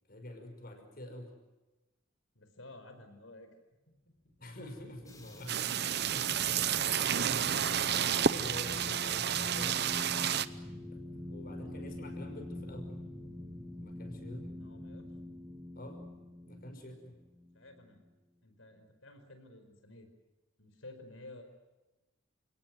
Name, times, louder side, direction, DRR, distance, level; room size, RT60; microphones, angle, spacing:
voice 1, 0.1-1.3 4.4-10.1 10.4-10.6 10.9-12.9 13.8-14.5 15.8-16.0 16.4-17.2, left 1 dB, 50° left, 5 dB, 5.7 m, -47 dB
voice 2, 2.3-3.5 14.5-15.0 17.5-18.0 18.4-20.1 20.6-21.4, left 2 dB, 80° left, 7 dB, 5.1 m, -52 dB
sound 1, 4.4-18.1, left 1 dB, ahead, 2.0 m, -45 dB
sound 2, 5.0-13.9, left 3 dB, 20° left, 6.4 m, -57 dB
sound 3, 5.5-10.5, right 8 dB, 55° right, 0.8 m, -30 dB
29.0 x 18.0 x 9.3 m, 1.1 s
head